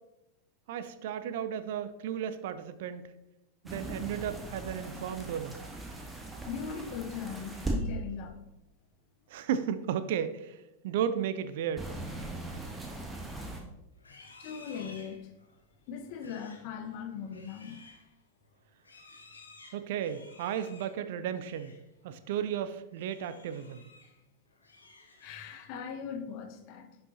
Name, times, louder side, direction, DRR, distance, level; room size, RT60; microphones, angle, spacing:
voice 1, 0.7-3.1 3.6-5.6 9.3-11.9 19.7-21.8 22.0-23.8, right 9 dB, 55° right, 0.4 m, -34 dB
sound 1, 3.7-7.7 11.8-13.6, right 2 dB, 10° right, 1.2 m, -39 dB
voice 2, 6.1-8.4 14.2-15.3 15.9-17.8 25.2-26.9, left 7 dB, 45° left, 0.9 m, -40 dB
Livestock farm animals working animals, 13.9-21.9 22.2-22.5 22.9-24.2 24.5-25.6, left 3 dB, 75° left, 1.1 m, -55 dB
10.5 x 5.5 x 2.7 m
figure-of-eight pair, 90°, 0 cm